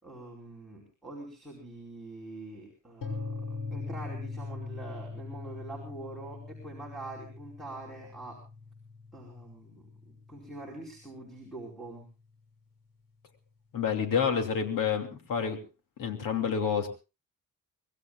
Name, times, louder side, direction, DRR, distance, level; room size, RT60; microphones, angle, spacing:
voice 1, 0.0-8.4 9.1-12.1, right 2 dB, ahead, -1 dB, 4.9 m, -44 dB
sound 1, 3.0-10.9, left 4 dB, 90° left, 7.0 m, -41 dB
voice 2, 13.7-15.6 16.0-16.9, left 7 dB, 75° left, 4 dB, 3.2 m, -28 dB
25.5 x 20.5 x 2.4 m, 0.32 s
cardioid pair, 170°, 33 cm